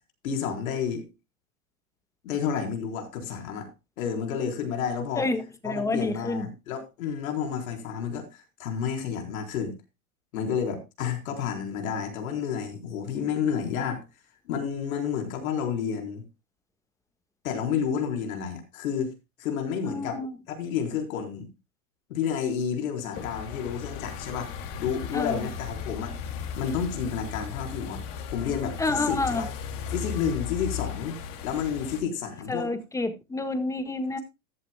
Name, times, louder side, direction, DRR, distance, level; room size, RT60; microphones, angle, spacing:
voice 1, 0.2-1.1 2.2-3.7 4.0-5.3 5.6-9.7 10.3-14.0 14.5-16.2 17.4-19.1 19.4-20.2 20.5-21.5 22.1-24.5 24.8-26.1 26.6-28.0 28.3-29.5 29.9-31.2 31.4-32.7, left 7 dB, 75° left, 4.1 m, -30 dB
voice 2, 5.1-6.5 19.8-20.3 25.1-25.4 28.8-29.5 32.5-34.2, left 2 dB, 5° left, 1.4 m, -29 dB
sound 1, 23.1-32.0, left 7 dB, 50° left, 2.7 m, -36 dB
14.0 x 12.0 x 2.2 m
supercardioid pair, 135°, 42 cm